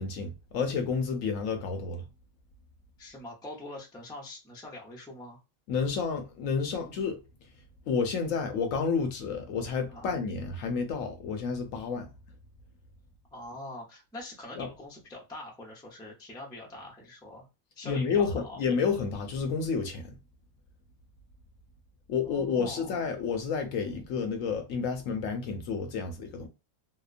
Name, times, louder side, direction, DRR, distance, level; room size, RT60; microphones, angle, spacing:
voice 1, 0.0-2.1 5.7-7.2 7.9-12.1 14.6-14.7 17.8-20.1 22.1-26.5, left 5 dB, 70° left, 0.9 m, -30 dB
voice 2, 3.0-5.4 9.9-10.1 13.3-17.5 17.8-18.6 22.2-23.1, left 1 dB, 5° left, 0.4 m, -44 dB
2.8 x 2.1 x 2.4 m
omnidirectional pair, 1.5 m